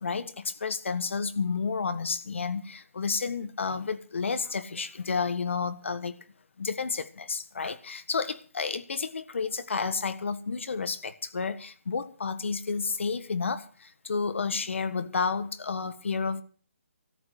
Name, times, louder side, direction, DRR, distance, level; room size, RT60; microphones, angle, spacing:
voice 1, 0.0-6.2 6.6-16.4, left 5 dB, 60° left, 1.5 m, -31 dB
13.5 x 9.0 x 8.2 m
hypercardioid pair, 170°, 7 cm